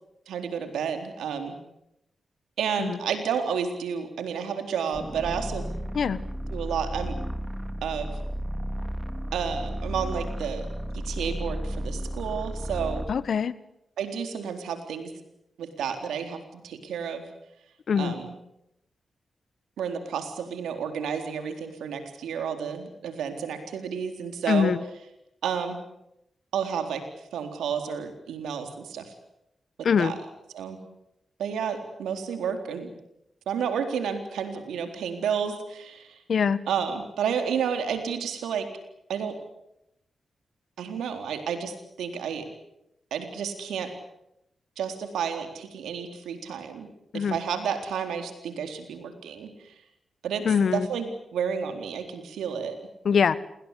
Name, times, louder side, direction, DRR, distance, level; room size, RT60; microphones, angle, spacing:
voice 1, 0.3-1.6 2.6-5.7 6.5-7.2 7.8-8.1 9.3-10.7 10.9-13.1 14.0-15.1 15.6-17.2 17.9-18.3 19.8-24.7 25.4-25.8 26.5-27.0 27.3-29.1 30.0-30.2 30.5-30.8 31.4-32.9 33.5-36.2 36.7-38.7 39.1-39.4 40.8-42.5 43.1-43.9 44.8-46.9 47.1-49.7 50.2-50.5 50.7-52.8, right 7 dB, 85° right, 6 dB, 3.9 m, -31 dB
sound 1, 4.9-13.2, equal, 5° right, 3.1 m, -33 dB
voice 2, 13.1-13.5 17.9-18.1 24.5-24.8 29.8-30.1 36.3-36.6 47.1-47.4 50.4-50.9 53.0-53.4, left 6 dB, 70° left, 16 dB, 1.4 m, -23 dB
29.0 x 21.5 x 8.4 m, 0.84 s
supercardioid pair, 40°, 0 cm